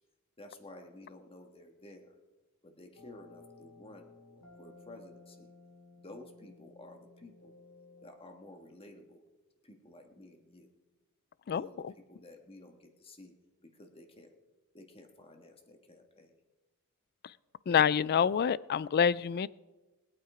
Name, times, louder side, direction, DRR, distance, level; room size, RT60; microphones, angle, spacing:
voice 1, 0.4-2.2 2.6-4.1 4.6-5.5 5.9-7.5 8.0-9.2 9.6-10.7 11.4-13.3 13.6-14.3 14.7-16.4, left 1 dB, 25° left, 4 dB, 1.7 m, -53 dB
sound 1, 3.0-8.1, left 3 dB, 85° left, 2.7 m, -56 dB
voice 2, 17.7-19.5, left 7 dB, 45° left, 20 dB, 0.3 m, -26 dB
21.5 x 8.5 x 5.0 m, 1.2 s
head